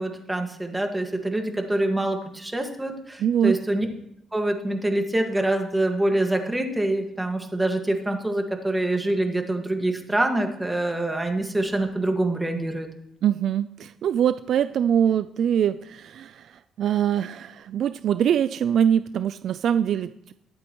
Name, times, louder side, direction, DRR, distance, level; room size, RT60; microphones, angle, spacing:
voice 1, 0.0-3.9 4.3-12.9, right 1 dB, 10° right, 4 dB, 1.8 m, -25 dB
voice 2, 3.2-3.6 13.2-20.3, right 9 dB, 70° right, 12 dB, 0.4 m, -23 dB
21.0 x 8.5 x 3.1 m, 0.75 s
cardioid pair, 90°, 0 cm